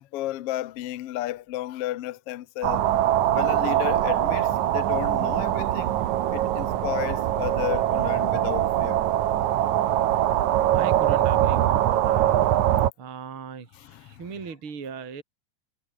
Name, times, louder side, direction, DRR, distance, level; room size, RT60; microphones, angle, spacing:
voice 1, 0.0-2.9 3.3-5.9 6.3-9.0 13.8-14.2, left 15 dB, 85° left, 1.3 m, -33 dB
sound 1, 2.6-12.9, right 12 dB, 65° right, 2.4 m, -23 dB
voice 2, 10.7-12.5 13.0-15.2, right 6 dB, 40° right, 3.6 m, -38 dB
omnidirectional pair, 4.0 m